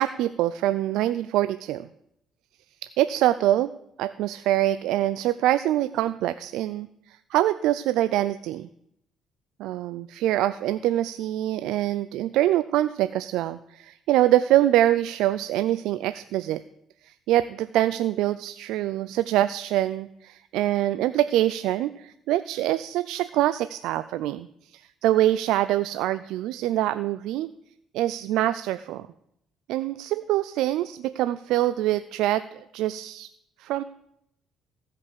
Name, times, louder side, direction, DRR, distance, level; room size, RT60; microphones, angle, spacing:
voice 1, 0.0-1.9 3.0-3.7 4.0-6.9 7.3-8.7 9.6-16.6 17.0-24.5 24.7-27.5 27.9-29.1 29.7-33.3 33.6-33.8, right 14 dB, 80° right, 14 dB, 0.3 m, -24 dB
15.0 x 5.5 x 6.7 m, 0.78 s
supercardioid pair, 80°, 0 cm